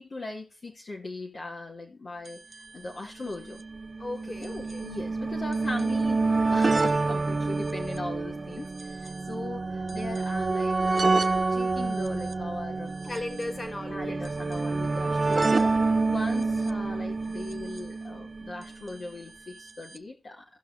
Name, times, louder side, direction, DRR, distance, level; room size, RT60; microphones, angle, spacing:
voice 1, 0.0-2.4 2.7-3.6 4.4-12.9 13.9-20.4, left 2 dB, 60° left, 2.7 m, -39 dB
sound 1, 2.3-2.4 2.5-2.6 3.5-18.7 19.7-19.8 20.0-20.1, right 3 dB, 50° right, 0.9 m, -28 dB
voice 2, 4.0-4.9 13.0-14.2, left 2 dB, 45° left, 3.2 m, -36 dB
17.0 x 5.9 x 2.8 m
cardioid pair, 40°, 0 cm